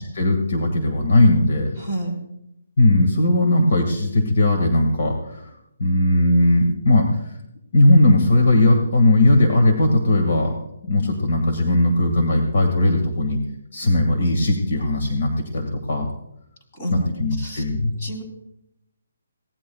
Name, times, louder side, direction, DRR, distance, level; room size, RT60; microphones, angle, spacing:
voice 1, 0.1-1.7 2.8-5.4 5.8-7.3 7.7-10.5 10.8-13.4 13.7-16.1 16.9-17.9, left 1 dB, 50° left, 3 dB, 1.9 m, -18 dB
voice 2, 1.8-2.2 16.7-17.1 17.4-17.6 17.9-18.2, right 1 dB, 25° left, 0 dB, 3.2 m, -29 dB
22.0 x 17.5 x 2.3 m, 0.82 s
hypercardioid pair, 175°, 0 cm